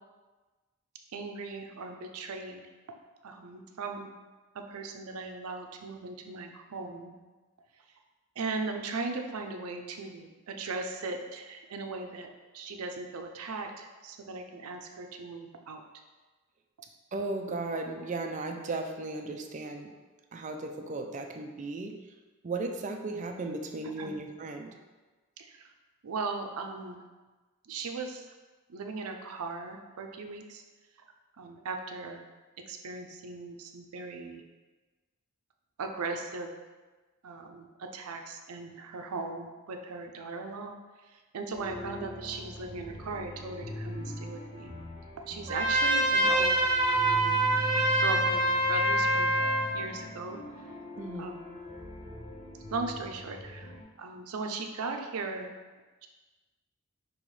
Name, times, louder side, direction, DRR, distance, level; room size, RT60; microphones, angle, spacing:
voice 1, 1.1-2.7 3.2-4.1 4.5-7.1 8.4-15.8 24.0-24.1 25.4-25.7 26.0-27.0 27.6-28.3 28.7-30.6 31.4-32.2 32.7-34.4 35.8-36.5 37.2-40.8 41.0-44.8 45.3-46.6 46.9-47.4 48.0-49.4 49.7-50.4 51.2-51.6 52.7-53.7 54.0-55.5, right 3 dB, 85° right, 4 dB, 0.5 m, -38 dB
voice 2, 17.1-19.9 20.3-21.9 22.4-24.7 51.0-51.3, right 3 dB, 35° right, 3 dB, 0.4 m, -36 dB
sound 1, 41.5-53.8, left 1 dB, 25° left, 0.8 m, -41 dB
Trumpet, 45.5-49.8, right 1 dB, 20° right, 1.5 m, -25 dB
5.4 x 3.0 x 3.2 m, 1.3 s
head